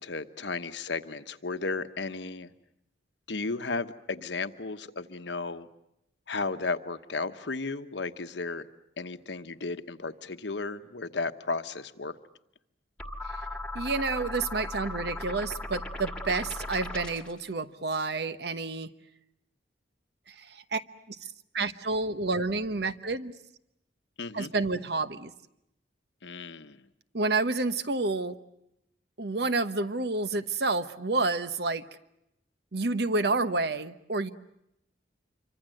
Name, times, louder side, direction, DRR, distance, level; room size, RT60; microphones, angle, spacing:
voice 1, 0.0-2.5 3.3-5.7 6.3-8.7 9.0-12.1 24.2-24.5 26.2-26.9, left 3 dB, 70° left, 10 dB, 1.1 m, -34 dB
sound 1, 13.0-17.4, left 2 dB, 5° left, 1.7 m, -37 dB
voice 2, 13.7-18.9 20.3-20.8 21.1-21.2 21.5-23.3 24.3-25.3 27.1-28.4 29.2-31.8 32.7-34.3, right 3 dB, 60° right, 12 dB, 1.1 m, -29 dB
27.0 x 24.5 x 7.7 m, 0.81 s
head